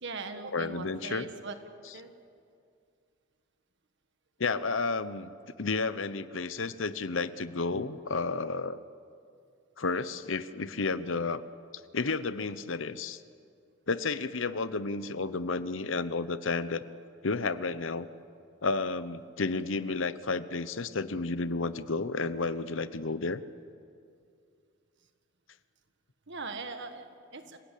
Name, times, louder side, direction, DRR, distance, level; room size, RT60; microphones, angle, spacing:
voice 1, 0.0-1.6 1.9-2.1 26.3-27.6, right 4 dB, 60° right, 7 dB, 1.7 m, -40 dB
voice 2, 0.5-1.3 4.4-8.8 9.8-11.4 11.9-13.2 13.9-16.8 17.2-18.1 18.6-23.4, left 3 dB, 70° left, 14 dB, 0.9 m, -31 dB
27.0 x 17.0 x 8.5 m, 2.3 s
head